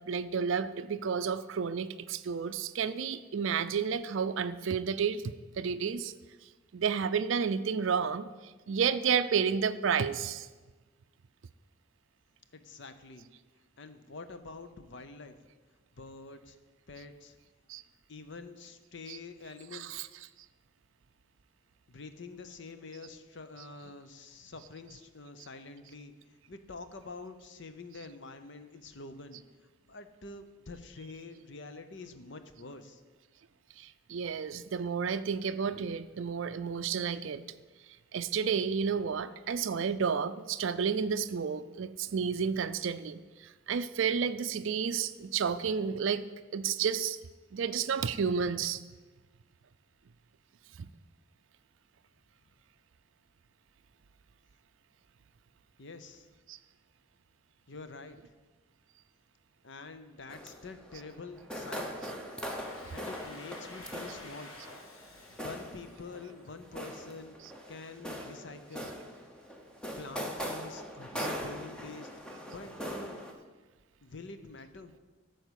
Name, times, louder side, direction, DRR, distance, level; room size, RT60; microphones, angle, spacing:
voice 1, 0.1-6.1 6.7-8.3 8.7-10.5 17.7-17.8 19.1-19.2 19.7-20.1 23.6-23.7 28.0-28.1 33.8-37.4 38.1-46.2 46.5-47.2 47.5-48.8 56.5-56.6 62.0-62.1 67.4-67.5 71.2-71.3, right 6 dB, 65° right, 10 dB, 0.4 m, -31 dB
voice 2, 12.5-13.3 13.8-15.4 16.0-16.6 16.9-17.4 18.1-20.0 21.9-29.4 29.9-33.0 55.8-56.3 57.7-58.2 59.6-62.1 62.7-64.6 64.9-67.4 67.7-68.9 70.0-72.1 72.5-73.2 74.0-74.9, left 3 dB, 60° left, 9 dB, 0.8 m, -47 dB
sound 1, 60.3-73.3, equal, 5° left, 1.0 m, -41 dB
Domestic sounds home sounds, 62.1-66.8, left 2 dB, 80° left, 1.6 m, -52 dB
12.0 x 4.6 x 8.2 m, 1.3 s
head